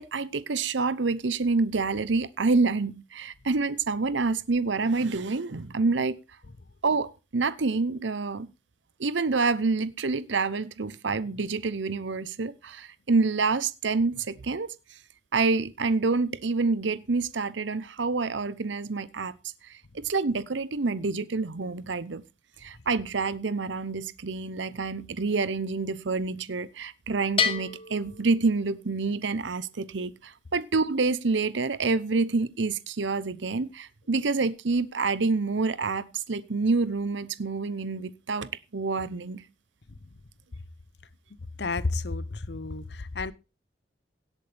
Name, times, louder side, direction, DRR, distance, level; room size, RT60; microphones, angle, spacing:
voice 1, 0.0-6.2 6.8-8.5 9.0-14.7 15.3-19.3 19.6-22.2 22.6-39.4, right 4 dB, 75° right, 0.8 m, -27 dB
Bell, 27.4-29.1, left 6 dB, 30° left, 1.6 m, -30 dB
voice 2, 41.6-43.3, left 3 dB, 60° left, 0.8 m, -31 dB
17.5 x 8.3 x 3.4 m
head